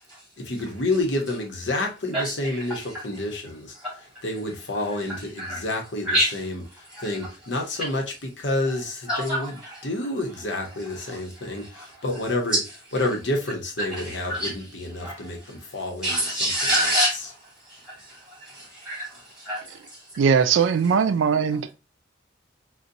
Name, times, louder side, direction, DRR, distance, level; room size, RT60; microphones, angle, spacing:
voice 1, 0.4-3.7 4.2-6.6 7.0-8.0 8.4-9.5 9.8-12.6 12.9-16.5, left 2 dB, 70° left, 0.9 m, -29 dB
voice 2, 2.1-3.2 3.8-4.1 5.0-5.7 6.0-6.4 6.9-7.3 8.6-8.7 9.1-9.9 10.9-12.2 12.5-12.6 13.8-14.5 15.0-15.6 16.0-20.1, equal, 5° right, 1.9 m, -29 dB
voice 3, 20.2-21.7, right 6 dB, 85° right, 0.3 m, -20 dB
3.9 x 2.2 x 2.6 m
head